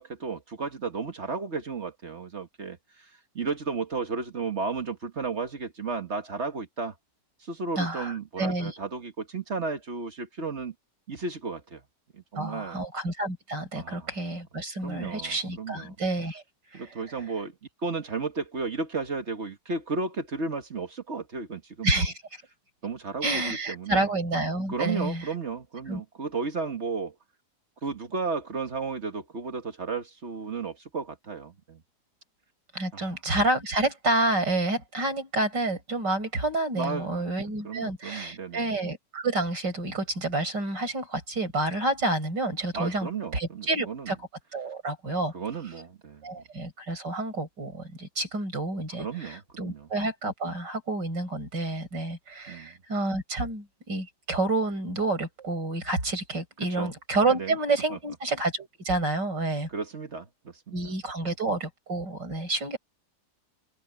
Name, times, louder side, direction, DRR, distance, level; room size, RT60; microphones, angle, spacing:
voice 1, 0.0-6.9 7.4-10.7 11.1-11.8 12.1-12.8 13.7-14.1 14.8-16.0 16.7-17.5 17.8-21.9 22.8-24.1 24.7-27.1 27.8-31.8 32.9-33.1 36.7-37.3 37.6-38.7 42.7-44.1 45.3-46.4 49.0-49.9 52.5-52.8 56.8-56.9 57.3-57.5 59.7-60.8, right 4 dB, 40° right, 1.6 m, -34 dB
voice 2, 7.8-8.7 12.4-16.4 16.7-16.9 21.8-22.4 23.2-25.3 25.9-26.0 32.7-44.2 44.5-45.3 46.2-59.7 60.7-62.8, right 2 dB, 80° right, 7.3 m, -29 dB
open air
omnidirectional pair, 1.9 m